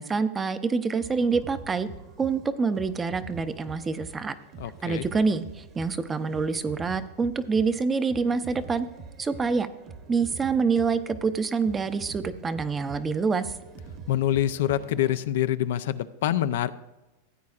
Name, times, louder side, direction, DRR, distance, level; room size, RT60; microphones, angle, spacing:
voice 1, 0.0-1.9 2.2-4.3 4.8-8.9 9.2-9.7 10.1-13.5, right 5 dB, 20° right, 12 dB, 0.6 m, -26 dB
sound 1, 1.0-15.1, right 5 dB, 40° right, 1.1 m, -44 dB
voice 2, 4.6-5.1 14.1-16.7, left 12 dB, 70° left, 12 dB, 0.4 m, -26 dB
15.0 x 8.5 x 2.4 m, 1.0 s
hypercardioid pair, 120°, 0 cm